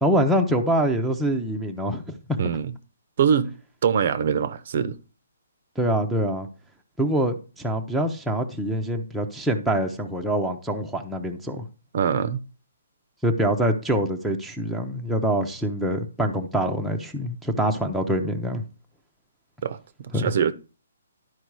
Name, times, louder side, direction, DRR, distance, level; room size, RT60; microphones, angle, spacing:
voice 1, 0.0-2.2 5.8-6.5 7.0-11.7 13.2-18.6 20.1-20.3, right 1 dB, ahead, 0.7 m, -25 dB
voice 2, 2.4-2.7 3.2-3.5 3.8-5.0 11.9-12.4 19.6-20.5, right 7 dB, 45° right, 0.7 m, -23 dB
11.5 x 4.8 x 4.7 m
hypercardioid pair, 170°, 0 cm